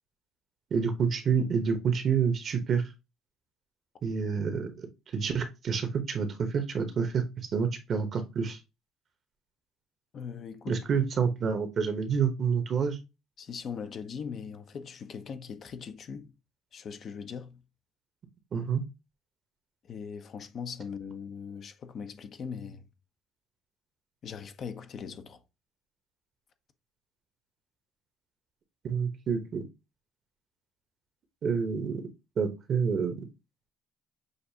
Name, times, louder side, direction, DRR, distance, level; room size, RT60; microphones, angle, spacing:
voice 1, 0.7-2.8 4.0-4.9 5.1-8.6 10.7-13.0 18.5-18.8 28.8-29.6 31.4-32.0 32.4-33.2, right 6 dB, 45° right, 0.9 m, -28 dB
voice 2, 10.1-10.8 13.4-16.3 16.7-17.6 19.8-22.8 24.2-25.4, left 6 dB, 50° left, 0.6 m, -40 dB
6.5 x 2.5 x 2.7 m
cardioid pair, 110°, 0 cm